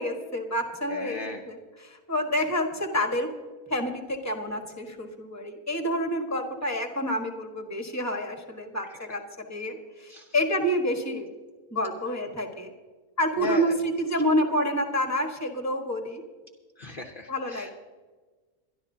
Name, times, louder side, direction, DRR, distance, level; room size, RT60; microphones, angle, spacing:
voice 1, 0.0-3.3 3.7-11.3 11.7-12.7 13.2-16.2 17.3-17.7, equal, 10° left, 4 dB, 1.4 m, -28 dB
voice 2, 0.9-1.4 9.1-9.2 10.1-10.3 13.4-13.8 16.8-17.7, left 3 dB, 40° left, 3 dB, 0.9 m, -36 dB
24.0 x 11.5 x 2.8 m, 1.4 s
omnidirectional pair, 1.5 m